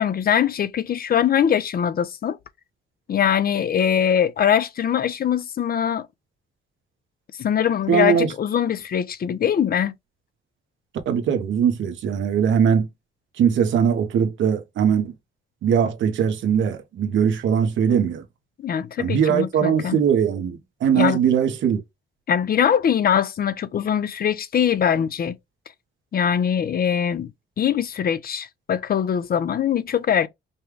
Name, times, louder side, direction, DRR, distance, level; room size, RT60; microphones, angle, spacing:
voice 1, 0.0-2.4 3.1-6.1 7.4-9.9 18.6-20.0 20.9-21.2 22.3-25.4 26.1-27.3 27.6-30.3, left 8 dB, 50° left, 0.7 m, -22 dB
voice 2, 7.9-8.3 11.1-12.9 13.4-15.1 15.6-18.2 19.0-21.8, right 7 dB, 75° right, 1.2 m, -20 dB
5.4 x 2.3 x 3.3 m
cardioid pair, 90°, 20 cm